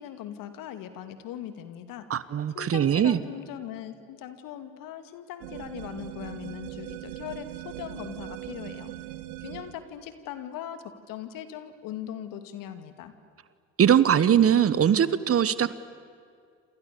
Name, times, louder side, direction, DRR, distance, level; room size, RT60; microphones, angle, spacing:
voice 1, 0.0-2.1 2.5-8.9 9.4-13.1, left 10 dB, 65° left, 9 dB, 2.4 m, -40 dB
voice 2, 2.1-3.2 13.8-15.7, right 9 dB, 40° right, 16 dB, 1.3 m, -21 dB
sound 1, 5.4-9.8, right 14 dB, 70° right, 1.7 m, -40 dB
28.5 x 28.0 x 7.0 m, 2.2 s
hypercardioid pair, 65°, 36 cm